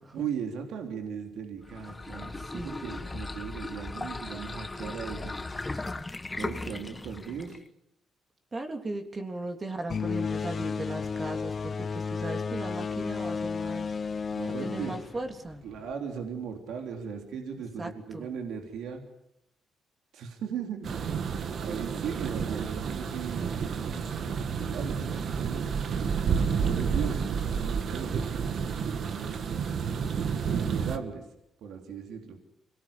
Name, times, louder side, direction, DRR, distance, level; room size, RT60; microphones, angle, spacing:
voice 1, 0.1-5.3 6.4-7.6 14.3-14.9 15.6-19.0 20.1-23.4 23.7-24.4 24.7-28.3 28.6-29.4 30.2-31.3 31.6-32.4, right 7 dB, 80° right, 3 dB, 3.4 m, -38 dB
sound 1, 1.6-7.7, left 2 dB, 20° left, 1.5 m, -37 dB
voice 2, 2.4-2.8 8.5-13.9 14.6-15.6 17.8-18.3, right 2 dB, 30° right, 4 dB, 3.2 m, -37 dB
sound 2, 9.9-15.9, left 5 dB, 45° left, 1.1 m, -33 dB
sound 3, 20.8-31.0, right 6 dB, 60° right, 2.0 m, -30 dB
25.5 x 18.5 x 8.6 m, 0.81 s
cardioid pair, 90°, 0 cm